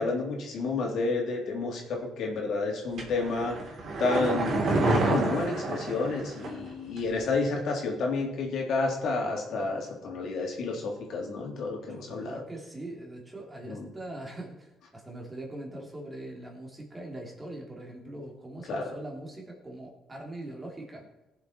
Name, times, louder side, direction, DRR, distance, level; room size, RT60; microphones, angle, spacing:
voice 1, 0.0-3.6 4.0-12.4 13.6-13.9 18.7-18.9, left 3 dB, 70° left, -1 dB, 3.1 m, -30 dB
sound 1, 3.0-6.7 7.0-7.1, right 2 dB, 55° right, 3.1 m, -28 dB
voice 2, 11.9-21.1, right 1 dB, 20° right, -1 dB, 2.9 m, -42 dB
18.0 x 7.0 x 4.3 m, 0.94 s
cardioid pair, 105°, 0 cm